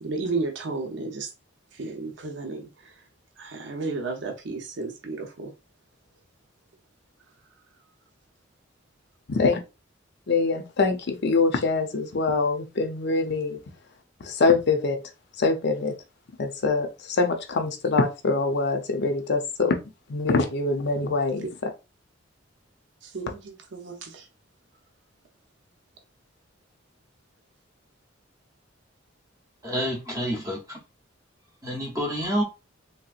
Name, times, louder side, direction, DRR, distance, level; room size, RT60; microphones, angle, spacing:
voice 1, 0.0-1.3 1.8-2.7 3.4-5.5 23.0-24.2, right 3 dB, 65° right, 0.7 m, -33 dB
voice 2, 9.3-9.6 10.3-13.6 14.2-15.0 15.4-15.9 16.4-19.7 20.1-21.5, left 3 dB, 60° left, 0.6 m, -24 dB
voice 3, 29.6-30.8 31.6-32.4, equal, 15° right, 0.7 m, -28 dB
3.5 x 2.8 x 2.4 m
head